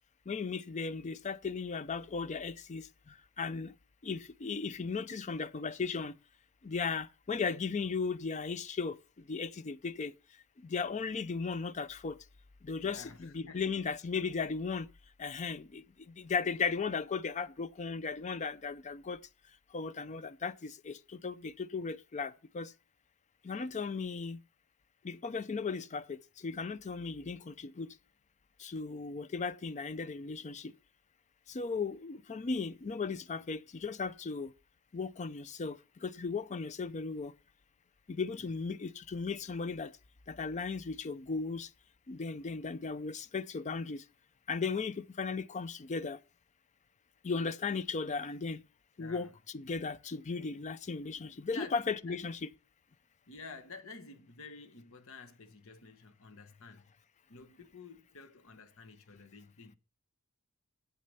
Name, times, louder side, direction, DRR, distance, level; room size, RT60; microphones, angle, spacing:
voice 1, 0.3-3.7 4.0-6.1 6.6-10.1 10.6-12.2 12.6-14.9 15.2-19.2 19.7-22.7 23.4-24.4 25.0-28.0 28.6-30.7 31.5-34.5 34.9-37.3 38.1-39.9 40.3-41.7 42.1-44.0 44.5-46.2 47.2-48.6 49.0-52.5, left 4 dB, 35° left, 0.4 m, -36 dB
voice 2, 12.8-13.7 49.0-49.3 51.5-51.8 52.1-52.2 53.3-56.9 57.3-59.8, left 4 dB, 65° left, 1.1 m, -50 dB
7.7 x 6.6 x 6.6 m
head